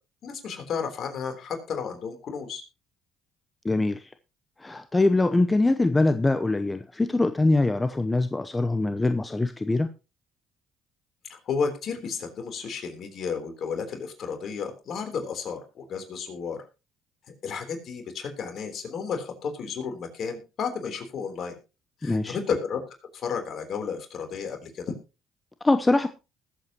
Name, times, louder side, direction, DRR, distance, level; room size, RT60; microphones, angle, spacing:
voice 1, 0.2-2.6 11.3-16.6 17.3-21.6 22.0-22.8 23.1-25.0, left 6 dB, 55° left, 5 dB, 3.5 m, -32 dB
voice 2, 3.6-4.1 4.6-9.9 22.0-22.4 25.6-26.1, left 2 dB, 20° left, 9 dB, 0.8 m, -23 dB
20.5 x 8.0 x 3.0 m, 0.29 s
supercardioid pair, 75°, 0 cm